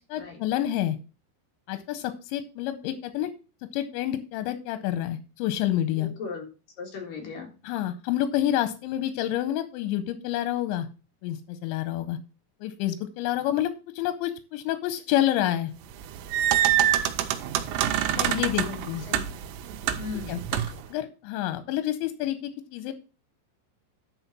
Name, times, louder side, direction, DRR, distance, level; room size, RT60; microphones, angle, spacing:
voice 1, 0.1-1.0 1.7-3.3 3.7-6.1 7.6-10.9 11.2-12.2 12.6-15.7 18.1-19.0 20.3-20.4 20.9-22.9, left 12 dB, 90° left, 10 dB, 3.1 m, -28 dB
voice 2, 6.0-6.5 6.8-7.5 18.6-19.2 20.0-20.8, left 5 dB, 60° left, 1 dB, 3.1 m, -38 dB
sound 1, 15.9-20.9, right 11 dB, 85° right, 2.9 m, -26 dB
11.0 x 4.0 x 6.0 m, 0.33 s
omnidirectional pair, 5.1 m